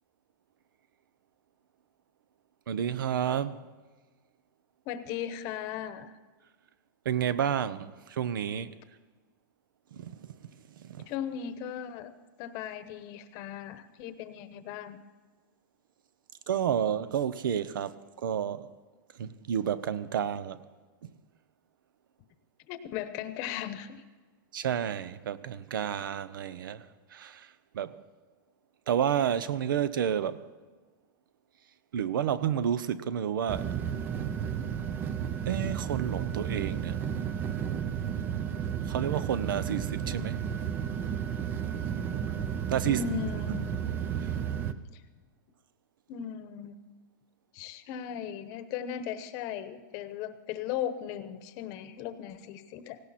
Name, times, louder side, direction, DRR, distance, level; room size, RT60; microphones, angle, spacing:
voice 1, 2.7-3.6 7.0-8.8 9.9-11.1 16.5-18.7 19.1-20.6 21.0-21.1 24.5-28.0 28.9-30.4 31.9-33.7 35.5-37.0 38.9-40.4 42.7-43.0 44.2-44.3, right 9 dB, 80° right, 0.9 m, -31 dB
voice 2, 4.9-6.1 11.1-12.1 12.4-15.0 22.7-24.0 42.8-43.8 44.9-45.0 46.1-46.8 47.5-53.0, left 9 dB, 35° left, 1.0 m, -37 dB
sound 1, 33.5-44.7, right 8 dB, 20° right, 0.5 m, -32 dB
18.0 x 17.0 x 4.3 m
supercardioid pair, 165°, 11 cm